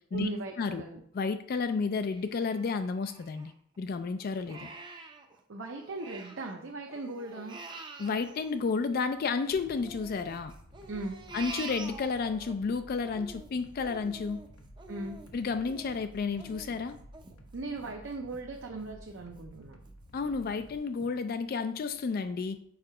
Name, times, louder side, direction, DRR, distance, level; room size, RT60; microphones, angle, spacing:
voice 1, 0.1-1.0 5.5-7.6 10.9-11.2 14.9-15.2 17.5-19.8, right 2 dB, 60° right, 1 dB, 0.7 m, -38 dB
voice 2, 1.1-4.7 8.0-10.5 11.3-14.4 15.3-17.0 20.1-22.6, left 4 dB, 45° left, 10 dB, 0.3 m, -31 dB
Crying sobbing, 2.1-3.8 4.2-6.6 6.9-9.3 9.7-12.5 12.9-18.4 18.8-18.9 19.4-19.9 20.4-20.5 21.0-21.1, right 3 dB, 20° right, 0.5 m, -47 dB
sound 1, 9.5-20.8, right 1 dB, 85° left, 1.0 m, -53 dB
4.8 x 4.5 x 4.8 m, 0.65 s
head